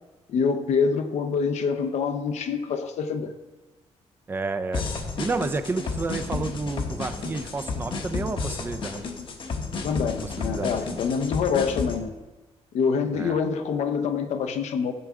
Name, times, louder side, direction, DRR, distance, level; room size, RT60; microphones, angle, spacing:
voice 1, 0.3-3.3 9.8-12.1 12.7-14.9, left 6 dB, 75° left, 8 dB, 0.8 m, -26 dB
voice 2, 4.3-4.8 5.2-9.0 10.2-11.0 13.1-13.4, right 3 dB, 20° right, 8 dB, 0.5 m, -30 dB
sound 1, 4.7-12.0, left 4 dB, 45° left, 0.9 m, -32 dB
14.5 x 7.0 x 3.7 m, 1.2 s
wide cardioid pair, 170°, 12 cm